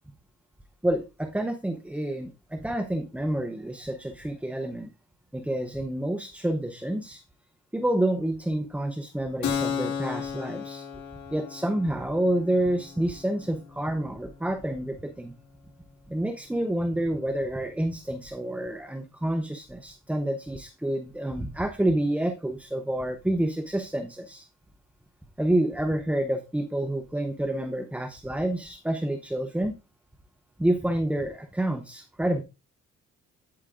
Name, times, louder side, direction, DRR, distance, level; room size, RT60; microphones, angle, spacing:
voice 1, 0.8-4.9 5.3-7.2 7.7-10.9 11.3-15.3 16.1-24.5 25.4-29.7 30.6-32.4, right 1 dB, 5° right, 8 dB, 0.6 m, -28 dB
Keyboard (musical), 9.4-16.7, left 7 dB, 70° left, 2.0 m, -36 dB
8.8 x 8.5 x 2.4 m, 0.28 s
cardioid pair, 90°, 30 cm